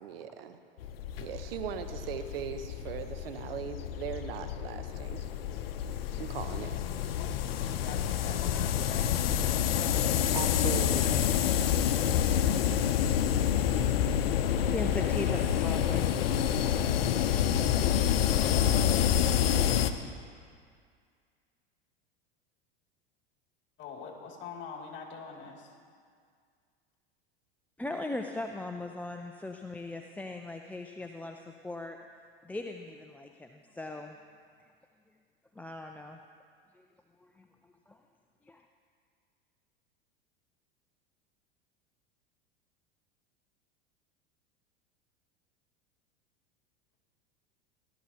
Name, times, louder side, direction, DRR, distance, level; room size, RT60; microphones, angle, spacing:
voice 1, 0.0-0.6 1.2-5.2 6.2-6.7 10.3-11.3, right 9 dB, 75° right, 8 dB, 0.9 m, -39 dB
sound 1, 0.8-19.9, left 9 dB, 75° left, 0.7 m, -28 dB
voice 2, 7.5-10.0 10.5-10.8 23.8-25.7, left 5 dB, 40° left, -1 dB, 2.5 m, -45 dB
voice 3, 14.7-16.1 27.8-32.0 32.4-34.2 35.6-36.2 36.7-36.9 37.2-37.5 37.9-38.0 38.5-38.6, left 2 dB, 5° left, 3 dB, 0.4 m, -39 dB
17.0 x 12.0 x 2.8 m, 2.1 s
hypercardioid pair, 90°, 30 cm